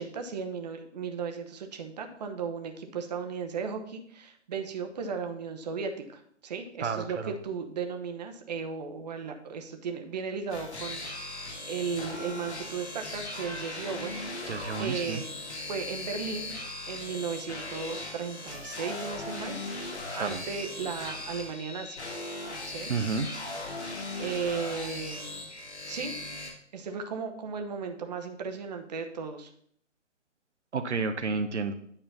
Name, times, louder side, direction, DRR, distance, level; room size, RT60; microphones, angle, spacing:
voice 1, 0.0-15.3 15.7-16.5 16.9-22.0 22.7-22.9 23.7-25.3 25.8-26.1 26.7-29.5, right 5 dB, 35° right, 5 dB, 0.9 m, -36 dB
voice 2, 6.8-7.3 14.5-15.2 20.2-20.4 22.9-23.3 30.7-31.7, right 4 dB, 65° right, 8 dB, 0.8 m, -30 dB
sound 1, 10.5-26.5, left 2 dB, 60° left, 2.4 m, -38 dB
9.1 x 4.3 x 5.5 m, 0.64 s
figure-of-eight pair, 140°, 37 cm